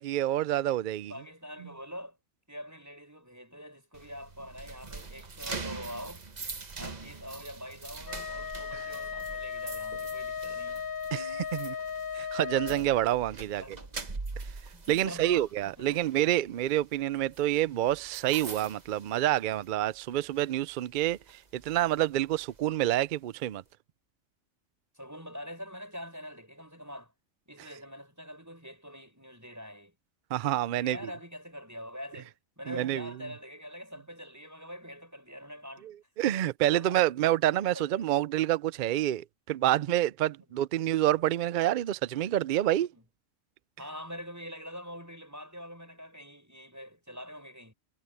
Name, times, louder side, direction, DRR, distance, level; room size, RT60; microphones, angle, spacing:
voice 1, 0.0-1.1 11.1-11.7 12.1-13.6 14.9-21.2 21.5-23.6 30.3-31.0 32.7-33.1 36.2-42.9, right 13 dB, 70° right, 0.4 m, -28 dB
voice 2, 1.1-2.2 2.5-6.2 6.8-10.9 13.4-14.0 14.7-16.1 24.9-27.1 27.5-30.0 30.7-35.9 36.6-37.0 37.4-37.9 40.5-40.6 42.8-43.0 43.8-47.7, equal, 10° right, 7.0 m, -44 dB
sound 1, 3.9-19.9 20.2-20.5 20.9-22.6, right 3 dB, 35° right, 1.3 m, -44 dB
Wind instrument woodwind instrument, 8.0-12.9, left 7 dB, 50° left, 0.8 m, -36 dB
omnidirectional pair, 1.4 m